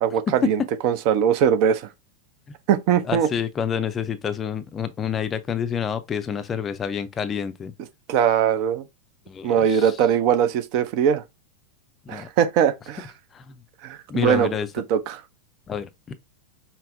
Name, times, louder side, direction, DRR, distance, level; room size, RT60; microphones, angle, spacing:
voice 1, 0.0-1.9 2.7-3.3 8.1-8.8 9.4-11.2 12.1-13.1 13.8-14.5 14.9-15.2, right 8 dB, 45° right, 0.5 m, -21 dB
voice 2, 3.0-7.7 9.3-10.0 12.1-12.3 13.3-13.6 14.1-14.7 15.7-15.9, left 7 dB, 25° left, 0.5 m, -28 dB
5.4 x 2.0 x 2.5 m
figure-of-eight pair, 90°, 0 cm